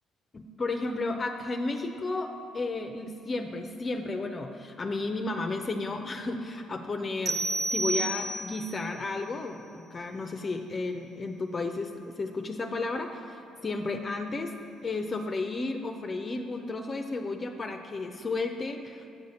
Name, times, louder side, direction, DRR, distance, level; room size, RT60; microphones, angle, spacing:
voice 1, 0.3-14.5 14.8-19.0, left 3 dB, 35° left, 5 dB, 0.5 m, -33 dB
sound 1, 7.3-8.8, right 2 dB, 35° right, 0.7 m, -30 dB
8.2 x 4.1 x 6.6 m, 2.4 s
supercardioid pair, 70°, 0 cm